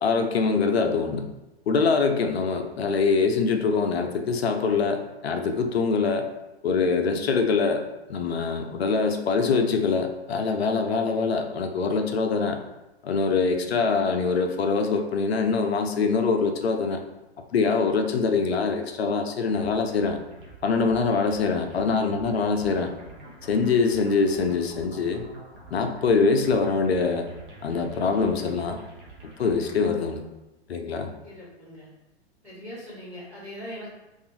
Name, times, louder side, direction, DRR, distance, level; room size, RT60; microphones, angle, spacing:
voice 1, 0.0-1.3 1.7-6.3 6.6-7.8 8.1-12.6 13.0-17.0 17.5-20.2 20.6-22.9 23.5-25.2 25.7-27.3 27.6-28.8 29.4-30.2 30.7-31.1, left 4 dB, 70° left, 5 dB, 0.5 m, -24 dB
sound 1, 19.5-29.9, right 2 dB, 50° right, 0.8 m, -47 dB
voice 2, 31.2-31.9 32.4-34.0, equal, 85° right, -7 dB, 1.4 m, -41 dB
2.4 x 2.4 x 2.7 m, 0.99 s
figure-of-eight pair, 110°, 33 cm